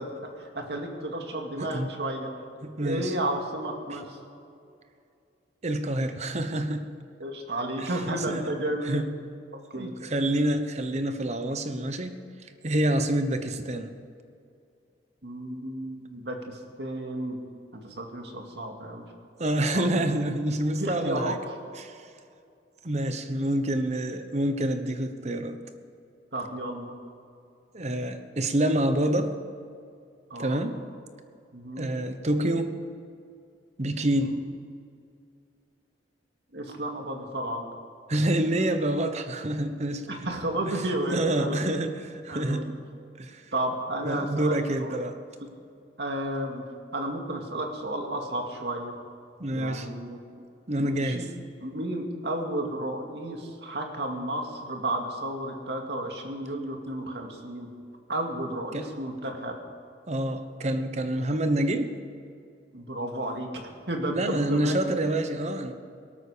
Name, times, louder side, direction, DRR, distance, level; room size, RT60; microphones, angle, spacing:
voice 1, 0.0-2.3 2.8-4.2 7.2-9.0 9.7-10.0 15.2-17.4 17.8-19.1 19.7-19.8 20.8-21.6 26.3-26.9 30.3-30.6 31.5-31.9 33.9-34.4 36.5-37.7 40.1-41.6 42.3-42.7 43.5-45.1 46.0-46.6 46.9-48.9 49.5-50.2 50.8-51.3 51.6-57.7 58.1-59.5 62.7-64.9, right 1 dB, 70° right, 2 dB, 2.3 m, -32 dB
voice 2, 2.6-3.2 5.6-6.9 7.8-7.9 8.3-8.5 8.9-9.1 9.7-12.2 12.6-13.9 19.4-21.4 21.8-22.0 22.8-25.6 27.7-29.3 30.4-30.8 31.8-32.8 33.8-34.3 38.1-40.1 41.1-42.8 43.2-43.4 44.0-45.2 49.4-49.9 50.7-51.2 58.7-58.9 60.1-62.0 64.1-65.7, right 1 dB, 40° right, 9 dB, 1.0 m, -27 dB
18.5 x 13.0 x 5.1 m, 2.4 s
head